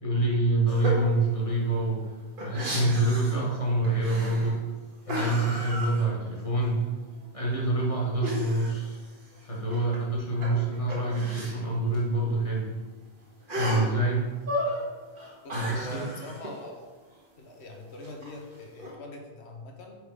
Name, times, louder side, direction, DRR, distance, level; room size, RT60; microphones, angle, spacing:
voice 1, 0.0-2.0 2.4-4.6 5.1-6.8 7.3-9.0 9.4-12.7 13.5-14.2 15.5-16.0, right 2 dB, 30° left, -4 dB, 1.5 m, -26 dB
sound 1, 0.7-1.1 1.5-1.6 1.8-3.5 3.8-4.6 5.1-6.6 6.9-7.0 8.2-10.0 10.3-11.6 11.9-12.0 12.3-12.4 13.5-13.9 14.4-14.8 15.2-16.6 18.0-18.9, equal, 50° right, 1.5 m, -34 dB
voice 2, 14.6-15.0 15.4-16.9 17.4-20.0, left 2 dB, 75° left, 2 dB, 1.3 m, -43 dB
4.9 x 4.8 x 4.8 m, 1.3 s
omnidirectional pair, 1.1 m